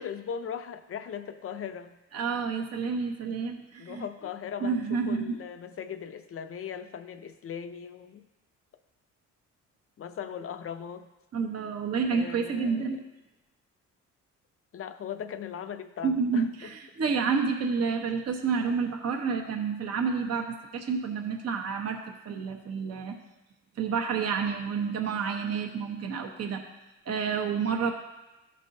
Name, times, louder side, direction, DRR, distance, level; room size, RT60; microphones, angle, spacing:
voice 1, 0.0-1.9 3.8-8.3 10.0-11.1 12.1-12.8 14.7-16.7, left 8 dB, 45° left, 9 dB, 0.6 m, -39 dB
voice 2, 2.1-4.1 4.6-5.4 11.3-13.0 16.0-22.0 22.2-23.1 23.8-26.6 27.1-27.9, right 5 dB, 55° right, 2 dB, 1.1 m, -29 dB
13.5 x 5.3 x 2.7 m, 1.0 s
cardioid pair, 90°, 30 cm